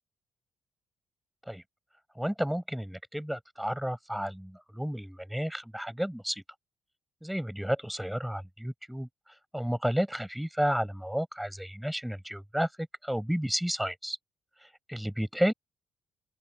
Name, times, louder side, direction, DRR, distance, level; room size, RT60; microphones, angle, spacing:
voice 1, 2.2-6.4 7.2-9.1 9.5-14.2 14.9-15.5, equal, 5° right, 4.4 m, -32 dB
open air
supercardioid pair, 60°, 0 cm